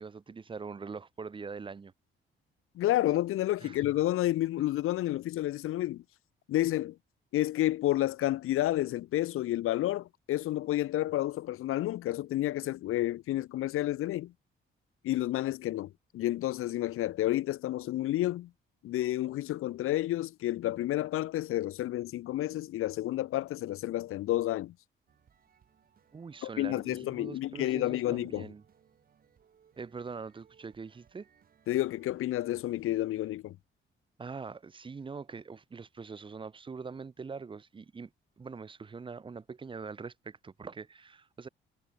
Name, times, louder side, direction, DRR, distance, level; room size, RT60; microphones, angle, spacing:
voice 1, 0.0-1.9 3.6-3.8 26.1-28.6 29.8-31.3 34.2-38.1 38.4-41.5, right 5 dB, 25° right, 1.4 m, -43 dB
voice 2, 2.8-6.0 6.5-7.0 7.3-14.3 15.0-18.5 18.8-24.7 26.4-28.5 31.7-33.6, left 14 dB, 85° left, 0.8 m, -30 dB
sound 1, 25.1-33.4, right 8 dB, 45° right, 6.0 m, -66 dB
cardioid pair, 170°, 21 cm